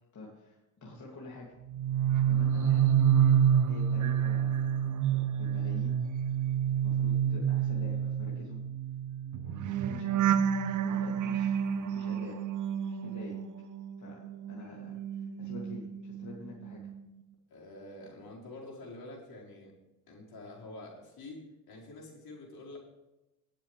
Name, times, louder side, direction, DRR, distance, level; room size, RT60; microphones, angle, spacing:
voice 1, 0.1-1.5 2.3-3.0 3.7-6.0 6.7-8.6 9.5-10.2 10.8-12.4 12.9-13.4 14.0-14.2 14.5-16.8, left 2 dB, 45° left, -4 dB, 2.7 m, -47 dB
sound 1, 1.7-13.9 14.2-16.3 16.6-17.0, right 9 dB, 45° right, 0.8 m, -28 dB
voice 2, 17.5-19.7 20.1-22.8, left 2 dB, 60° left, -3 dB, 4.6 m, -47 dB
19.0 x 7.4 x 3.4 m, 0.98 s
supercardioid pair, 75°, 42 cm